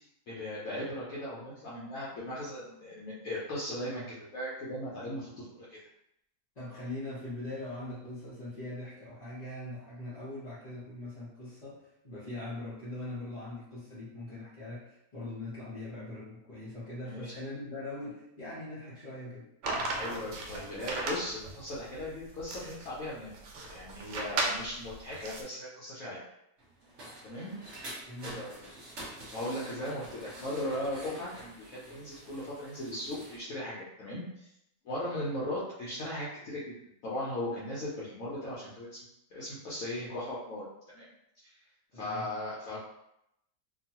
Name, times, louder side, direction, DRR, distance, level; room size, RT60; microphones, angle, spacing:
voice 1, 0.0-5.8 17.0-17.3 20.0-26.2 27.2-27.5 28.2-28.6 28.8-29.0 29.3-34.5 34.8-36.7 37.0-39.0 39.3-41.1 41.9-42.8, left 1 dB, 65° left, -8 dB, 1.0 m, -38 dB
voice 2, 6.6-19.5 28.0-28.5 41.9-42.3, left 1 dB, 35° left, -11 dB, 0.6 m, -41 dB
sound 1, 19.6-25.4, right 2 dB, 90° right, 1.2 m, -36 dB
sound 2, 26.6-33.4, right 1 dB, 50° right, 0.9 m, -47 dB
2.9 x 2.3 x 2.8 m, 0.81 s
omnidirectional pair, 1.8 m